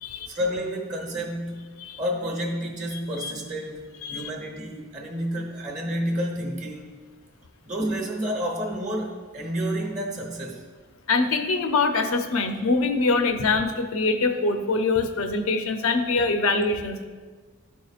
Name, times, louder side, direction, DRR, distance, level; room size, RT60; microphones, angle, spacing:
voice 1, 0.3-1.6 2.0-6.9 7.6-10.6 12.5-12.6, equal, 35° right, 0 dB, 1.0 m, -30 dB
voice 2, 11.1-17.0, left 3 dB, 80° left, 6 dB, 0.6 m, -24 dB
12.0 x 4.6 x 2.4 m, 1.4 s
head